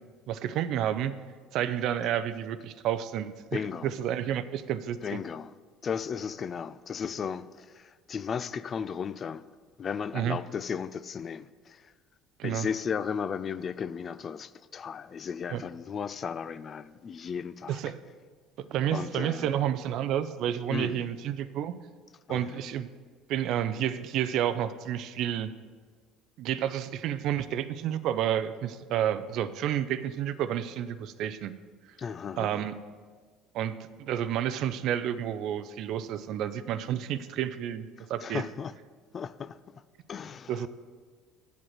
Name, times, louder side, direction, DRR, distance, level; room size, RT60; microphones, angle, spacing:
voice 1, 0.3-1.1 1.5-5.2 10.1-10.4 12.4-12.7 15.5-15.6 17.7-17.9 18.7-21.7 22.3-22.9 23.3-25.5 26.4-31.5 32.4-32.7 33.5-38.4 40.5-40.7, right 10 dB, 65° right, 0.5 m, -30 dB
voice 2, 3.5-3.9 5.0-5.5 5.8-9.4 9.8-11.9 12.4-17.8 18.9-19.5 20.7-21.1 22.3-22.6 32.0-32.6 38.0-38.7 39.1-39.6 40.1-40.7, left 6 dB, 40° left, 0.4 m, -35 dB
8.1 x 5.1 x 7.5 m
hypercardioid pair, 70°, 0 cm